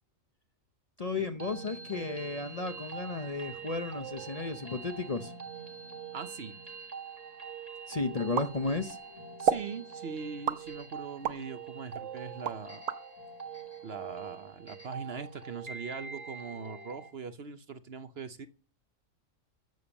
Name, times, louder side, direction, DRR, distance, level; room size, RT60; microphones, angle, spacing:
voice 1, 1.0-5.3 7.9-9.0, left 3 dB, 35° left, 0.8 m, -33 dB
sound 1, 1.2-17.1, right 5 dB, 30° right, 1.6 m, -44 dB
voice 2, 6.1-6.6 9.4-12.9 13.8-18.5, right 5 dB, 55° right, 1.0 m, -41 dB
sound 2, 8.4-9.0 9.5-9.7 10.5-11.5 11.9-13.0, right 8 dB, 85° right, 1.2 m, -31 dB
14.0 x 7.1 x 7.1 m
omnidirectional pair, 1.4 m